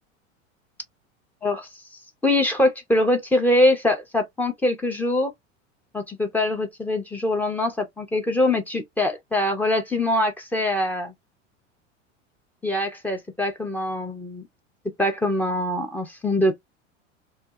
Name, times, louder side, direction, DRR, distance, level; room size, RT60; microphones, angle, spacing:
voice 1, 2.2-5.3 5.9-11.1 12.6-14.4 15.0-16.5, left 1 dB, 5° left, 0.4 m, -23 dB
2.3 x 2.1 x 2.6 m
figure-of-eight pair, 80°, 38 cm